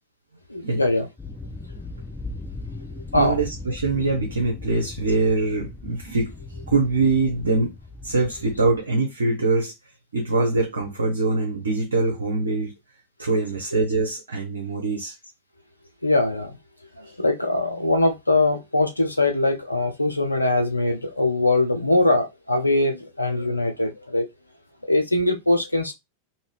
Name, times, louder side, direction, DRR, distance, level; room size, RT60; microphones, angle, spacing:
voice 1, 0.5-1.1 3.1-3.4 16.0-16.5 17.0-24.2 24.9-25.9, left 2 dB, 85° left, 0.6 m, -22 dB
sound 1, 1.2-8.8, left 2 dB, 15° left, 0.9 m, -38 dB
voice 2, 3.1-6.3 6.7-7.7 8.0-9.7 10.1-12.7 13.2-15.2 17.0-17.2, right 3 dB, 75° right, 0.7 m, -23 dB
2.7 x 2.7 x 3.2 m
figure-of-eight pair, 90°, 0 cm